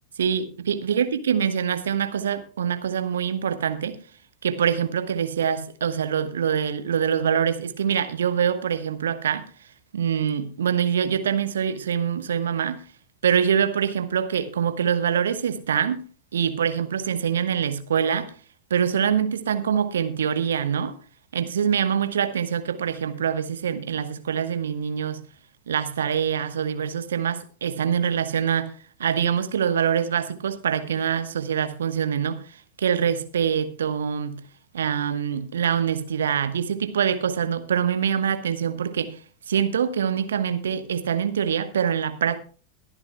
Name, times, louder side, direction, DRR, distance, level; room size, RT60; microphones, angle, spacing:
voice 1, 0.2-4.0 4.4-9.5 9.9-12.8 13.2-16.0 16.3-18.3 18.7-20.9 21.3-25.2 25.7-28.7 29.0-34.4 34.7-39.2 39.5-42.4, right 8 dB, 65° right, 1.1 m, -24 dB
22.5 x 9.7 x 2.3 m
figure-of-eight pair, 90°, 0 cm